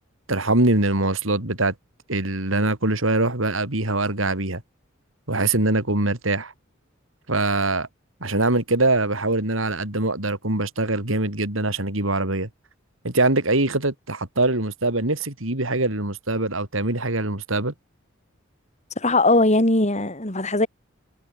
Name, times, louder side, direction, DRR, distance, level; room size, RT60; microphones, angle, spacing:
voice 1, 0.3-1.7 2.1-4.6 5.3-6.5 7.3-7.9 8.2-12.5 13.0-17.7, right 2 dB, 80° right, 4.0 m, -23 dB
voice 2, 19.0-20.7, left 2 dB, 35° left, 4.3 m, -19 dB
head